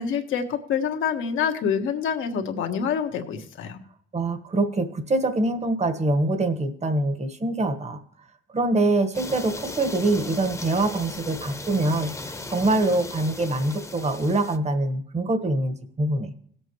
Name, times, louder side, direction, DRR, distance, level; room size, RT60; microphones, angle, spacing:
voice 1, 0.0-3.8, left 7 dB, 80° left, 4 dB, 1.6 m, -26 dB
voice 2, 4.1-8.0 8.5-16.3, right 2 dB, 35° right, 9 dB, 1.5 m, -24 dB
sound 1, 9.1-14.6, left 2 dB, 15° left, 1.1 m, -37 dB
18.0 x 8.0 x 3.1 m, 0.64 s
cardioid pair, 90°, 20 cm